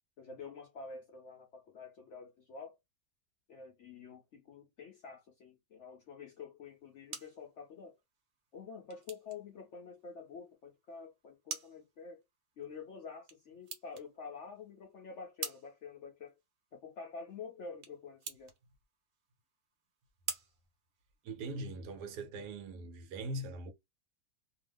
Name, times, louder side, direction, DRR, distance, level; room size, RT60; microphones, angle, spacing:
voice 1, 0.2-2.8 3.5-8.0 8.5-12.2 12.6-16.4 16.7-18.5, left 5 dB, 65° left, 0.7 m, -48 dB
sound 1, 6.7-21.6, right 6 dB, 60° right, 1.1 m, -49 dB
voice 2, 21.2-23.7, right 2 dB, 75° right, 1.2 m, -41 dB
2.8 x 2.2 x 3.3 m
omnidirectional pair, 1.8 m